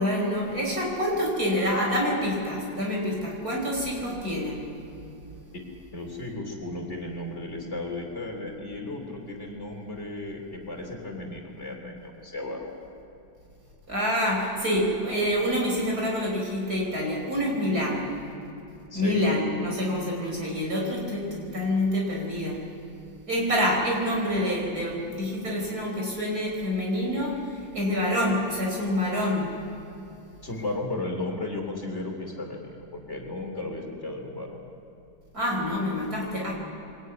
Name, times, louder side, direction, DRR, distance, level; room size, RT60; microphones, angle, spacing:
voice 1, 0.0-4.7 13.9-18.1 18.9-22.7 23.3-29.6 35.3-36.5, equal, 50° right, -1 dB, 6.0 m, -27 dB
voice 2, 5.9-12.7 18.9-19.2 30.4-34.6, left 2 dB, 35° left, 1 dB, 3.5 m, -35 dB
24.0 x 21.5 x 9.6 m, 2.8 s
omnidirectional pair, 2.0 m